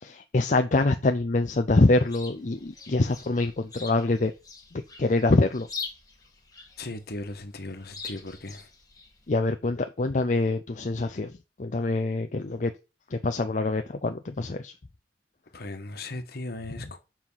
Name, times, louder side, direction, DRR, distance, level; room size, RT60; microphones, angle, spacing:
voice 1, 0.0-4.3 4.7-5.7 9.3-11.3 11.6-12.7 13.1-14.7, left 2 dB, 45° left, 0.6 m, -25 dB
Chirp tweet, 1.7-9.4, left 5 dB, 20° left, 1.9 m, -44 dB
voice 2, 6.8-8.7 15.5-17.0, left 2 dB, 60° left, 1.4 m, -37 dB
7.4 x 5.9 x 5.6 m
head